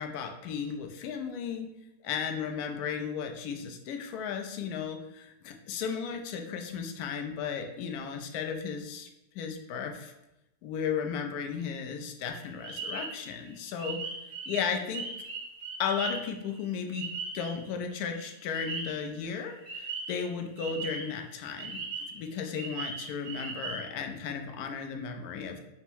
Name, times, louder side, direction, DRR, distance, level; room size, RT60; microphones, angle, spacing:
voice 1, 0.0-1.7 2.0-9.1 9.3-10.1 10.6-14.0 14.5-15.0 15.8-17.1 17.3-21.8 22.1-25.6, left 6 dB, 75° left, 4 dB, 1.0 m, -35 dB
sound 1, 12.3-17.7 17.9-19.0 19.7-21.2 21.6-23.8, right 4 dB, 80° right, 1.5 m, -38 dB
4.5 x 2.0 x 4.3 m, 0.89 s
omnidirectional pair, 1.7 m